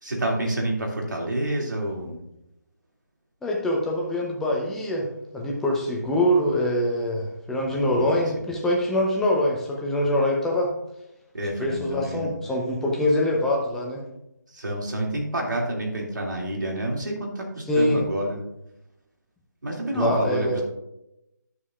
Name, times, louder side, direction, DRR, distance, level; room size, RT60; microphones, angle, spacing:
voice 1, 0.0-2.2 7.7-8.0 11.3-12.3 14.5-18.4 19.6-20.6, right 1 dB, 75° right, 0 dB, 2.5 m, -28 dB
voice 2, 3.4-5.1 5.3-10.7 11.6-14.0 17.7-18.0 19.9-20.6, left 1 dB, 5° left, -2 dB, 0.7 m, -24 dB
11.0 x 6.8 x 2.5 m, 0.84 s
figure-of-eight pair, 160°, 10 cm